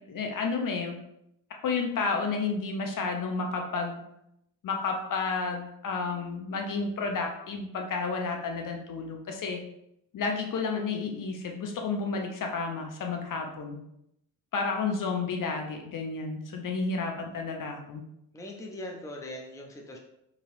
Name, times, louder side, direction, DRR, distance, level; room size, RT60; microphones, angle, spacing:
voice 1, 0.1-1.0 1.6-4.0 4.6-9.6 10.1-13.8 14.5-18.0, left 4 dB, 45° left, 3 dB, 0.7 m, -31 dB
voice 2, 18.3-20.0, left 1 dB, 5° left, 1 dB, 0.6 m, -40 dB
2.8 x 2.7 x 2.6 m, 0.80 s
hypercardioid pair, 50°, 44 cm